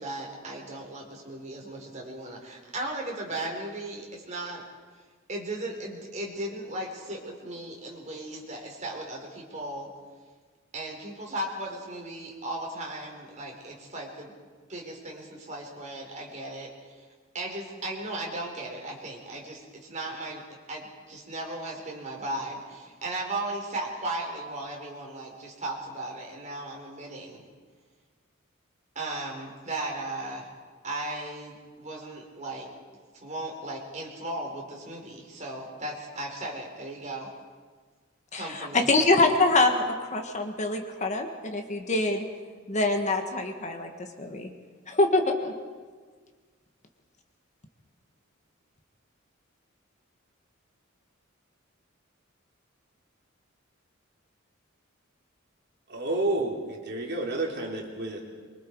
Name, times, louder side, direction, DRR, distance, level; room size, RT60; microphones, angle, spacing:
voice 1, 0.0-4.6 5.3-9.9 10.7-14.3 14.7-17.1 17.3-20.4 20.7-27.4 28.9-30.5 30.8-32.7 33.2-37.3 38.3-38.9, right 2 dB, 35° right, 0 dB, 4.3 m, -36 dB
voice 2, 38.3-42.2 42.7-44.5 44.9-45.5, left 2 dB, 35° left, 5 dB, 1.6 m, -25 dB
voice 3, 55.9-58.2, right 2 dB, 55° right, 0 dB, 3.3 m, -30 dB
24.5 x 24.0 x 4.7 m, 1.5 s
head